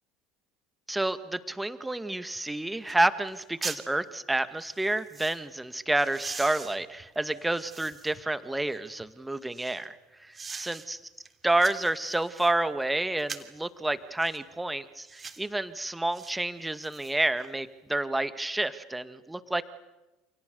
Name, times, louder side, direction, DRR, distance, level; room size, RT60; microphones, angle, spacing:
voice 1, 0.9-11.0 11.4-19.6, right 2 dB, 10° right, 11 dB, 2.1 m, -29 dB
sound 1, 2.3-2.4 2.9-3.0 3.3-3.9 4.6-5.4 5.9-8.2 8.7-9.8 10.3-10.9 11.2-12.6 13.2-13.6 14.2-14.4 15.0-15.5 16.1-16.3 16.7-17.5 17.9-18.0, right 5 dB, 25° right, 3.3 m, -42 dB
29.0 x 28.5 x 7.0 m, 1.0 s
figure-of-eight pair, 65°, 0 cm